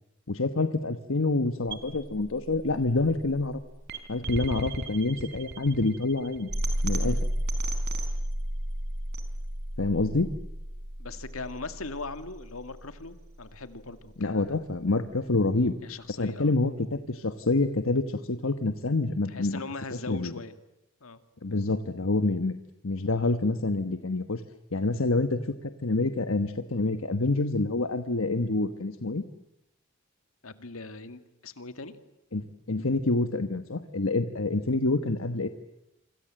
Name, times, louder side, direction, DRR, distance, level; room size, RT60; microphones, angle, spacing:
voice 1, 0.3-3.6 4.1-6.5 6.8-7.2 9.8-10.3 14.2-15.7 16.2-19.6 20.1-20.3 21.4-22.5 22.8-24.4 24.7-29.2 32.3-35.5, left 2 dB, 70° left, 9 dB, 1.2 m, -27 dB
sound 1, 1.7-13.7, right 1 dB, 55° right, 4.2 m, -33 dB
voice 2, 11.0-14.6 15.8-16.5 19.3-20.6 21.0-21.2 30.4-32.0, left 3 dB, 90° left, 10 dB, 2.2 m, -40 dB
27.5 x 26.0 x 7.7 m, 0.89 s
head